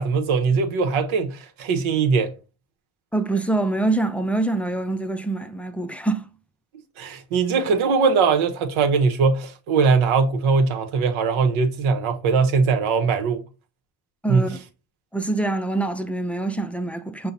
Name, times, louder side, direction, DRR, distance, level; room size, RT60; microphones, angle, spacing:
voice 1, 0.0-2.3 7.0-13.4 14.3-14.4, right 5 dB, 75° right, 1.0 m, -21 dB
voice 2, 3.1-6.3 14.2-14.6 15.1-17.3, right 2 dB, 5° left, 0.4 m, -25 dB
5.6 x 2.2 x 3.9 m
supercardioid pair, 70°, 49 cm